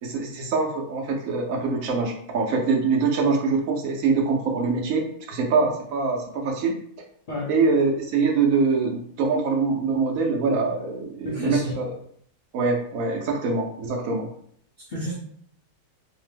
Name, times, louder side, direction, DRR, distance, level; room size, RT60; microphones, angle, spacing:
voice 1, 0.0-5.0 5.3-6.7 7.5-11.8 12.5-14.3, right 4 dB, 70° right, 1 dB, 0.9 m, -24 dB
voice 2, 11.2-11.7 14.8-15.2, left 1 dB, 70° left, -4 dB, 0.4 m, -30 dB
2.9 x 2.0 x 3.2 m, 0.64 s
omnidirectional pair, 1.6 m